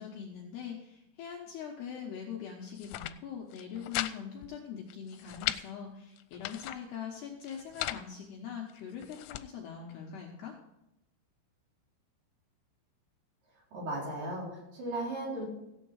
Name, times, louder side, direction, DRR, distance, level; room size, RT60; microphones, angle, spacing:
voice 1, 0.0-10.6, left 7 dB, 70° left, -1 dB, 2.7 m, -42 dB
sound 1, 2.7-3.2 3.5-4.1 4.4-4.5 4.9-5.6 6.2-6.8 7.4-8.0 8.7-9.5, left 16 dB, 90° left, 3.4 m, -37 dB
voice 2, 13.7-15.4, right 1 dB, 45° right, -4 dB, 5.3 m, -36 dB
15.0 x 9.1 x 4.8 m, 0.87 s
omnidirectional pair, 6.0 m